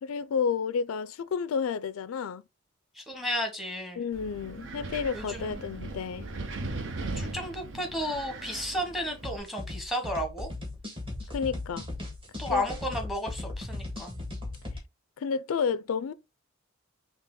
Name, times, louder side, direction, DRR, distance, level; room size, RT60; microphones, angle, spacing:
voice 1, 0.0-2.4 4.0-6.3 11.3-11.9 12.5-12.6 15.2-16.1, left 6 dB, 85° left, 0.4 m, -31 dB
voice 2, 3.0-4.0 5.1-5.7 7.1-10.5 12.4-14.2, equal, ahead, 0.9 m, -33 dB
Wind, 4.1-9.4, right 2 dB, 60° right, 0.7 m, -38 dB
sound 1, 9.2-14.8, left 2 dB, 25° right, 1.5 m, -38 dB
4.2 x 2.9 x 3.7 m
head